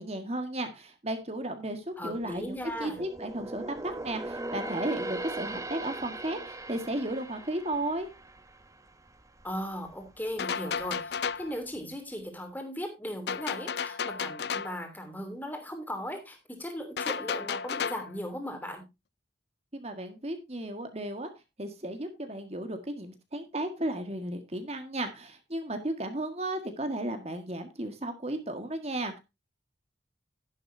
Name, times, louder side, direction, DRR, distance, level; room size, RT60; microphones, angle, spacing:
voice 1, 0.0-8.1 19.7-21.3 21.6-29.2, right 1 dB, 35° right, 7 dB, 1.7 m, -34 dB
voice 2, 2.0-3.0 9.4-18.8, equal, 10° left, 5 dB, 2.9 m, -37 dB
sound 1, 2.1-9.6 9.9-10.2 10.7-11.4 11.7-11.8, right 2 dB, 15° right, 0.9 m, -40 dB
sound 2, 10.4-11.5 13.3-14.8 17.0-18.1, left 6 dB, 60° left, 0.5 m, -33 dB
12.0 x 11.0 x 2.7 m, 0.23 s
head